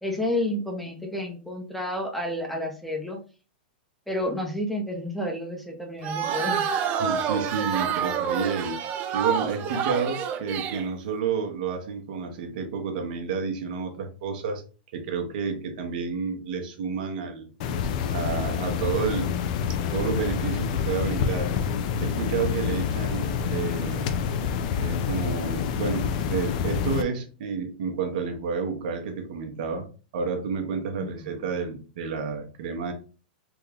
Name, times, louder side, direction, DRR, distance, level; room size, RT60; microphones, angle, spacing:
voice 1, 0.0-3.2 4.1-6.7 31.0-31.3, left 1 dB, ahead, 1 dB, 0.7 m, -30 dB
sound 1, 6.0-10.9, right 7 dB, 35° right, 0.5 m, -28 dB
voice 2, 7.0-8.8 9.1-14.6 14.9-17.5 18.1-19.4 19.9-21.5 22.0-24.2 24.8-29.9 30.1-32.9, right 5 dB, 65° right, 4 dB, 1.0 m, -30 dB
sound 2, 17.6-27.0, left 7 dB, 55° left, 0.4 m, -27 dB
3.6 x 2.2 x 3.5 m, 0.35 s
hypercardioid pair, 120°, 5 cm